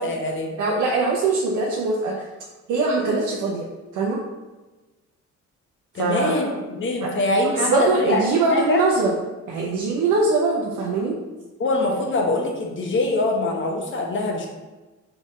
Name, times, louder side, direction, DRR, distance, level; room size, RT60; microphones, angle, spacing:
voice 1, 0.0-0.5 5.9-8.8 11.6-14.5, left 2 dB, 40° left, 1 dB, 1.0 m, -23 dB
voice 2, 0.6-2.3 2.7-3.7 3.9-4.2 6.0-6.3 7.0-7.1 7.6-9.1 9.5-11.2, right 3 dB, 80° right, -3 dB, 0.7 m, -22 dB
3.6 x 3.5 x 4.1 m, 1.2 s
cardioid pair, 90°, 30 cm